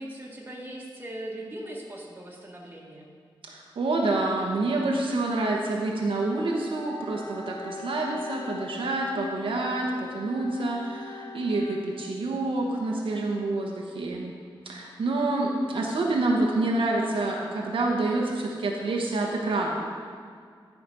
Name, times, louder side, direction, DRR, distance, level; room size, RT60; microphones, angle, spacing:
voice 1, 0.0-3.1, right 1 dB, 20° right, -3 dB, 1.8 m, -39 dB
voice 2, 3.5-14.3 14.6-19.7, right 2 dB, 80° right, -1 dB, 1.2 m, -27 dB
Wind instrument woodwind instrument, 6.1-12.5, left 4 dB, 35° left, 0.6 m, -43 dB
12.0 x 5.1 x 5.5 m, 2.1 s
wide cardioid pair, 120°, 9 cm